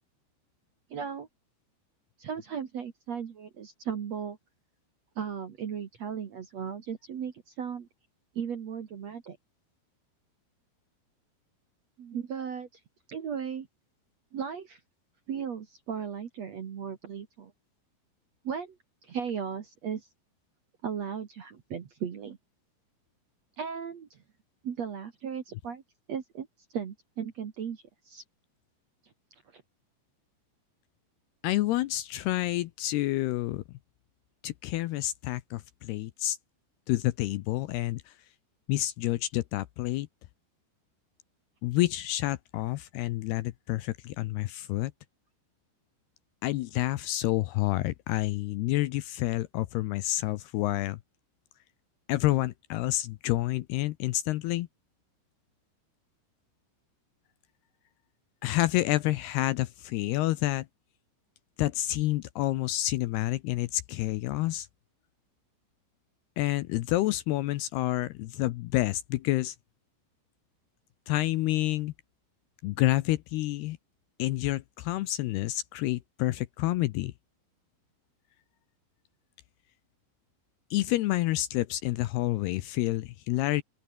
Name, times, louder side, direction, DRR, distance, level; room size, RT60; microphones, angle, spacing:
voice 1, 0.9-1.3 2.2-4.4 5.2-7.9 8.3-9.4 12.0-12.7 13.1-13.7 14.3-14.8 15.3-17.5 18.4-18.8 19.0-20.1 20.8-22.4 23.6-24.2 24.6-25.8 26.1-26.5 26.7-28.2 29.5-29.6, right 7 dB, 55° right, 2.1 m, -36 dB
voice 2, 31.4-33.6 34.4-36.4 36.9-38.1 38.7-40.1 41.6-44.9 46.4-51.0 52.1-54.7 58.4-60.7 61.6-64.7 66.4-69.6 71.1-71.9 72.6-73.8 74.2-77.1 80.7-83.6, left 16 dB, 75° left, 2.5 m, -28 dB
open air
omnidirectional pair, 5.2 m